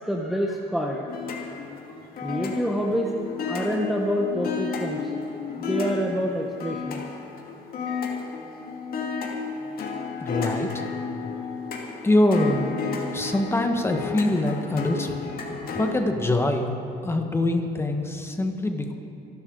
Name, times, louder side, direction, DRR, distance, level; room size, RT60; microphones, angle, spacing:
voice 1, 0.0-1.0 1.3-1.4 1.9-5.2 5.6-7.0, equal, ahead, -1 dB, 1.1 m, -27 dB
sound 1, 1.1-15.9, left 5 dB, 60° left, 2.3 m, -32 dB
voice 2, 10.2-10.8 12.0-12.7 13.1-15.2 15.7-16.7 17.0-18.9, left 1 dB, 15° left, 4 dB, 1.5 m, -24 dB
26.0 x 12.0 x 3.9 m, 2.8 s
cardioid pair, 110°, 17 cm